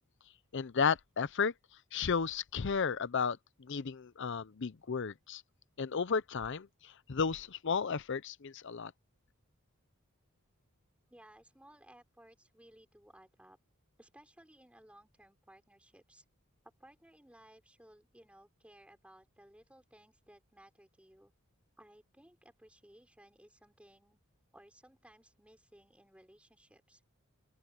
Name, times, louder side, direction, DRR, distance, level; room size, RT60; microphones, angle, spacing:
voice 1, 0.5-1.5 1.9-5.4 5.8-8.9, left 5 dB, 60° left, 0.6 m, -33 dB
voice 2, 11.1-13.6 14.0-16.2 16.6-21.3 21.8-24.2 24.5-27.0, right 1 dB, 5° right, 3.4 m, -60 dB
open air
head